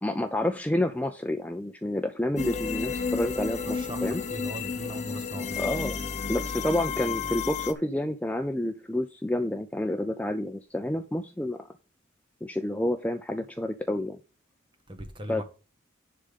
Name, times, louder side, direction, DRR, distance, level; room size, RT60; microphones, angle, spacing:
voice 1, 0.0-4.2 5.6-6.0 6.3-11.6 12.4-14.2 15.3-15.4, left 1 dB, 5° left, 0.4 m, -29 dB
sound 1, 2.4-7.7, left 5 dB, 35° left, 0.8 m, -32 dB
voice 2, 3.7-5.6 14.9-15.4, right 1 dB, 25° right, 1.3 m, -39 dB
10.0 x 3.7 x 5.2 m
head